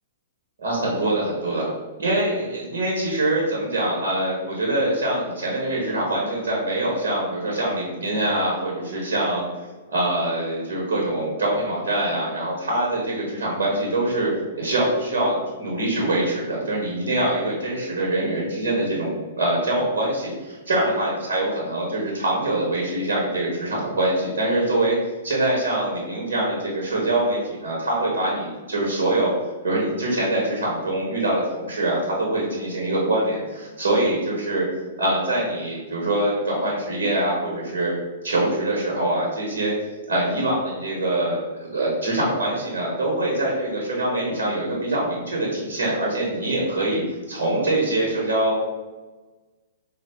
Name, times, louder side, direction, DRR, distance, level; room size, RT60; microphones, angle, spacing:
voice 1, 0.6-1.6 2.0-9.5 9.9-14.3 14.6-25.0 25.2-29.3 29.6-34.6 35.0-37.9 38.2-39.7 40.1-47.0 47.3-48.7, right 1 dB, 65° right, -4 dB, 1.0 m, -24 dB
3.7 x 2.3 x 3.3 m, 1.2 s
figure-of-eight pair, 110°, 0 cm